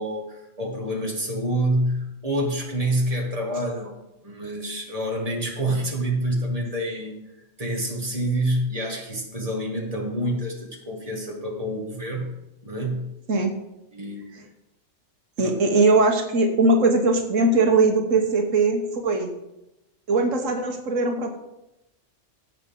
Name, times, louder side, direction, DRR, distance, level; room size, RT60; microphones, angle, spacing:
voice 1, 0.0-3.9 4.2-7.1 7.6-12.3 12.6-13.1 13.9-14.2 15.4-15.6, right 1 dB, 30° right, -1 dB, 2.2 m, -27 dB
voice 2, 15.4-19.3 20.1-21.4, right 3 dB, 85° right, 3 dB, 1.6 m, -20 dB
16.5 x 6.6 x 3.8 m, 0.90 s
omnidirectional pair, 1.3 m